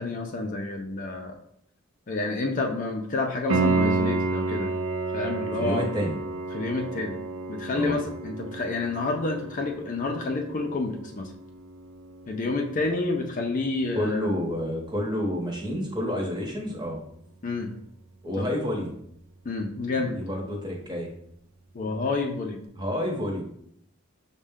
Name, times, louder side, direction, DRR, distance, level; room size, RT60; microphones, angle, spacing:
voice 1, 0.0-1.4 2.1-4.7 5.1-5.9 6.5-7.2 7.5-11.3 12.3-14.3 17.4-17.7 18.4-18.5 19.4-20.2 21.7-22.7, left 3 dB, 40° left, 3 dB, 0.4 m, -29 dB
Piano, 3.5-14.2 17.5-17.6, right 3 dB, 75° right, 0.4 m, -31 dB
voice 2, 5.6-6.1 7.7-8.0 13.9-17.0 18.2-19.0 19.9-21.1 22.8-23.4, equal, 20° right, -1 dB, 0.9 m, -29 dB
6.1 x 2.1 x 3.5 m, 0.70 s
head